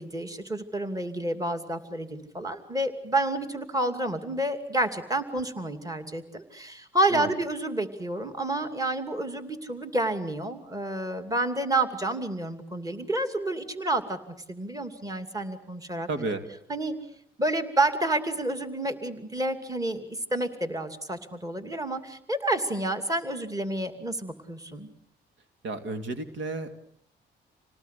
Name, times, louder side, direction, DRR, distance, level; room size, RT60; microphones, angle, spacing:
voice 1, 0.0-16.1 16.7-17.0 17.4-24.9, right 2 dB, 15° right, 9 dB, 2.7 m, -29 dB
voice 2, 16.1-16.4 25.6-26.7, right 2 dB, 70° right, 8 dB, 2.5 m, -32 dB
27.0 x 18.5 x 8.4 m, 0.71 s
cardioid pair, 90°, 20 cm